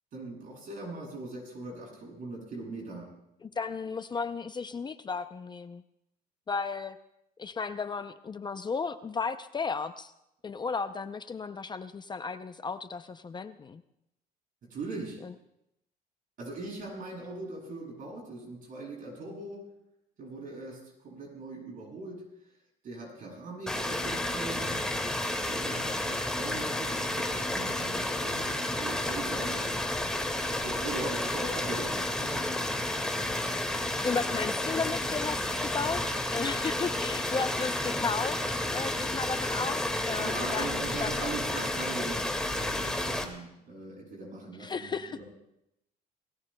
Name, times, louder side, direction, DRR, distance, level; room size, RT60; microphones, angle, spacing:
voice 1, 0.1-3.1 14.6-15.2 16.4-19.6 20.2-22.2 22.8-24.9 25.4-29.8 30.5-32.5 40.1-45.2, right 2 dB, 55° right, -2 dB, 7.3 m, -40 dB
voice 2, 3.4-5.8 6.5-7.0 7.4-10.1 10.4-13.8 15.2-15.3 34.0-41.3 44.6-45.2, left 5 dB, 25° left, 10 dB, 0.5 m, -34 dB
sound 1, 23.7-43.2, left 1 dB, 5° left, 1.9 m, -31 dB
27.0 x 18.5 x 2.3 m, 0.82 s
cardioid pair, 110°, 17 cm